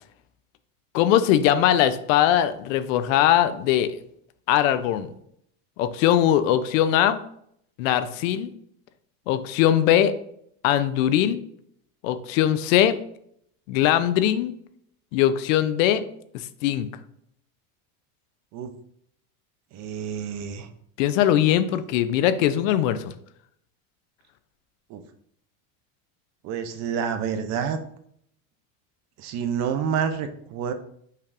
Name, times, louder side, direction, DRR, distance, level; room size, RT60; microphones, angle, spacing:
voice 1, 0.9-3.9 4.5-5.1 5.8-7.2 7.8-8.5 9.3-10.1 10.6-11.4 12.0-13.0 13.7-14.5 15.1-16.0 16.6-16.9 21.0-23.1, left 11 dB, 75° left, 13 dB, 0.5 m, -21 dB
voice 2, 19.7-20.7 24.9-25.0 26.4-27.8 29.2-30.7, right 7 dB, 45° right, 8 dB, 0.5 m, -28 dB
5.5 x 3.4 x 2.5 m, 0.69 s
supercardioid pair, 130°, 40 cm